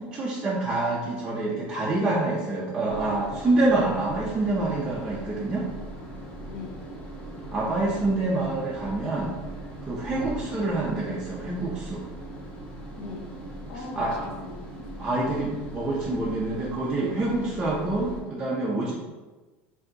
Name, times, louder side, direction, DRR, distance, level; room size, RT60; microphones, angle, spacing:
voice 1, 0.0-5.7 7.5-9.4 9.8-12.1 13.9-14.2 15.0-18.9, right 2 dB, 15° right, -6 dB, 0.4 m, -27 dB
sound 1, 2.9-18.2, right 1 dB, 15° left, 0.8 m, -40 dB
voice 2, 6.5-6.8 12.9-13.3 13.7-14.9, left 4 dB, 65° left, 2 dB, 0.7 m, -40 dB
3.4 x 2.6 x 3.8 m, 1.2 s
cardioid pair, 165°, 7 cm